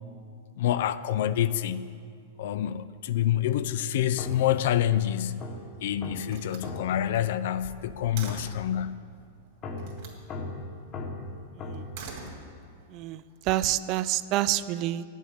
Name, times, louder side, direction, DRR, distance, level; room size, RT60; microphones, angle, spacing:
voice 1, 0.6-1.8 2.4-5.4 5.8-9.0, left 11 dB, 65° left, 0.5 m, -27 dB
sound 1, 2.8-3.2 4.2-8.2 9.6-12.1, left 2 dB, 35° left, 1.2 m, -40 dB
Slam, 5.2-5.8 6.3-8.7 9.8-10.2 11.7-12.9, right 4 dB, 60° right, 2.5 m, -44 dB
voice 2, 11.6-11.9 12.9-15.0, right 14 dB, 40° right, 0.4 m, -28 dB
9.5 x 7.3 x 8.5 m
hypercardioid pair, 135°, 0 cm